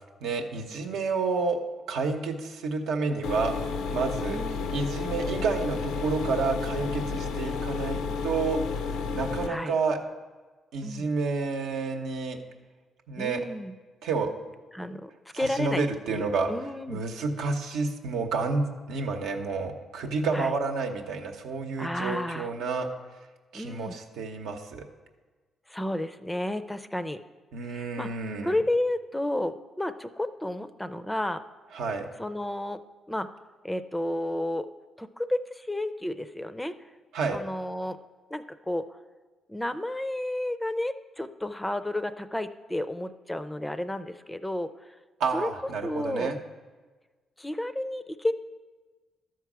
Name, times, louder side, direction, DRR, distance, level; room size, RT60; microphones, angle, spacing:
voice 1, 0.2-1.6 1.9-3.5 3.9-4.4 4.7-8.6 9.1-10.0 10.7-12.4 13.1-13.4 14.0-14.3 15.3-16.5 16.9-22.9 23.5-24.8 27.5-28.5 31.7-32.1 37.1-37.4 45.2-46.4, right 4 dB, 85° right, 3 dB, 0.9 m, -29 dB
sound 1, 3.2-9.5, left 5 dB, 90° left, 0.5 m, -31 dB
voice 2, 4.3-4.6 9.5-9.8 10.8-11.1 13.2-13.7 14.7-15.8 16.1-17.0 20.3-20.5 21.8-22.5 23.5-24.0 25.7-27.2 27.6-28.1 28.4-31.4 32.2-32.8 33.1-33.4 33.6-34.7 35.0-36.7 37.3-38.0 38.3-38.9 39.5-44.9 45.3-45.5 45.8-46.3 47.4-48.3, left 1 dB, 10° left, 11 dB, 0.4 m, -31 dB
12.5 x 4.6 x 6.0 m, 1.4 s
cardioid pair, 90°, 0 cm